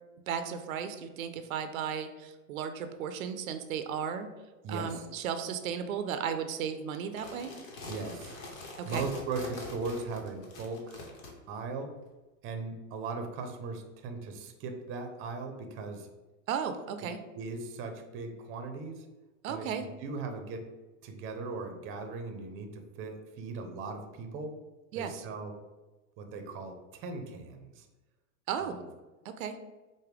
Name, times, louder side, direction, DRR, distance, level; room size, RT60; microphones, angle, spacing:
voice 1, 0.3-4.3 4.7-7.5 8.8-9.1 16.5-17.2 19.4-19.9 24.9-25.2 28.5-28.8 29.4-29.6, right 7 dB, 80° right, 9 dB, 0.5 m, -35 dB
voice 2, 4.6-5.1 7.9-8.5 8.8-11.0 11.5-11.9 12.4-16.1 17.0-17.1 17.3-19.0 19.5-20.7 21.0-24.5 24.9-25.5 26.2-27.9 28.6-28.8, right 4 dB, 30° right, 5 dB, 0.6 m, -38 dB
sound 1, 7.0-11.3, left 2 dB, 75° left, 1.1 m, -43 dB
4.8 x 2.2 x 3.3 m, 1.2 s
hypercardioid pair, 115°, 41 cm